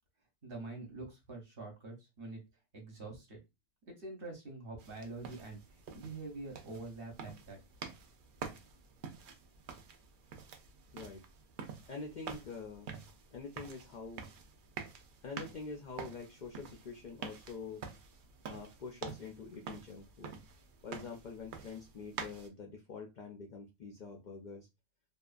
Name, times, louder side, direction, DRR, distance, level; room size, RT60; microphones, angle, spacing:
voice 1, 0.4-2.4 2.7-3.4 3.9-7.6, right 2 dB, 50° right, 1 dB, 0.9 m, -45 dB
sound 1, 4.8-22.5, right 6 dB, 75° right, 0.4 m, -48 dB
voice 2, 11.9-12.9 13.3-14.3 15.2-17.8 18.5-20.3 20.8-24.7, left 4 dB, 80° left, 1 dB, 0.4 m, -46 dB
2.7 x 2.3 x 2.4 m, 0.24 s
omnidirectional pair, 1.4 m